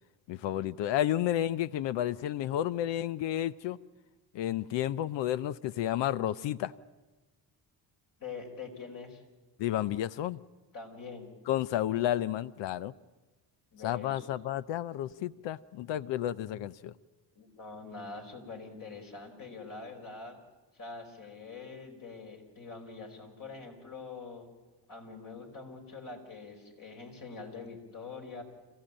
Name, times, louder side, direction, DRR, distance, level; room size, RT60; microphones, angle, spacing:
voice 1, 0.3-3.8 4.3-6.7 9.6-10.4 11.5-12.9 13.8-16.9, left 12 dB, 80° left, 0.6 m, -31 dB
voice 2, 8.2-9.2 10.7-11.3 13.7-14.3 17.3-20.4 20.7-24.5 24.9-28.4, left 4 dB, 50° left, 5.0 m, -44 dB
27.0 x 15.0 x 8.8 m
cardioid pair, 85°, 44 cm